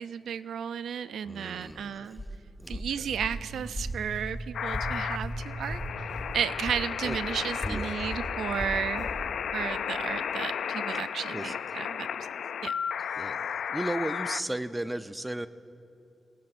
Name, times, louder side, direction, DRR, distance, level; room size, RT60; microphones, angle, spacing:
voice 1, 0.0-2.2 2.7-6.0 6.3-9.1 9.5-12.3 12.6-12.7, right 8 dB, 80° right, 14 dB, 0.4 m, -33 dB
voice 2, 1.2-2.3 2.6-3.1 7.0-8.2 11.3-11.8 13.0-15.5, right 1 dB, 15° right, 12 dB, 0.7 m, -36 dB
Walk footsteps, 1.6-6.4 6.6-9.3, equal, 25° left, 3.6 m, -38 dB
sound 1, 2.8-7.6, right 1 dB, 45° right, 2.5 m, -42 dB
sound 2, 4.5-14.4, left 7 dB, 75° left, 0.3 m, -34 dB
26.5 x 19.5 x 2.6 m, 2.7 s
supercardioid pair, 50°, 0 cm